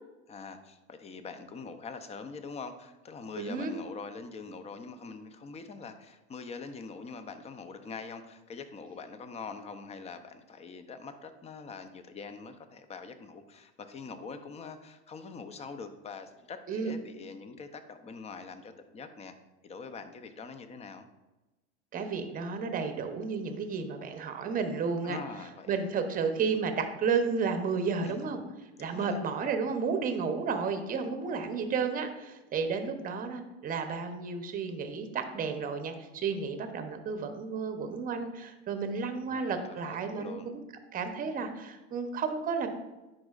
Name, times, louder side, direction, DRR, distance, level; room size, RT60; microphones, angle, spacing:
voice 1, 0.3-19.3 19.6-21.1 25.0-25.8 28.0-28.2 28.8-29.2 39.2-40.5, left 4 dB, 20° left, 10 dB, 0.5 m, -44 dB
voice 2, 3.4-3.7 16.7-16.9 21.9-25.2 25.7-28.4 28.8-40.6 40.9-42.7, right 5 dB, 25° right, 7 dB, 0.8 m, -32 dB
10.0 x 5.0 x 2.4 m, 1.1 s
supercardioid pair, 120°, 32 cm